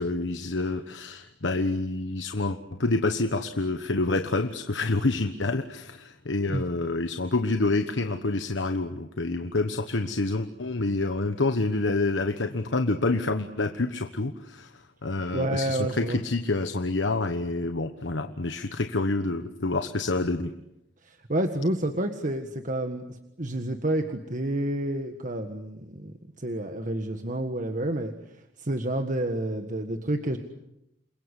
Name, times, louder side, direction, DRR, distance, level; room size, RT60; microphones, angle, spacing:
voice 1, 0.0-20.5, left 2 dB, 85° left, 8 dB, 1.3 m, -27 dB
voice 2, 15.3-16.2 21.0-28.1 28.6-30.4, right 1 dB, 45° right, 6 dB, 1.7 m, -29 dB
29.0 x 22.5 x 8.3 m, 0.85 s
head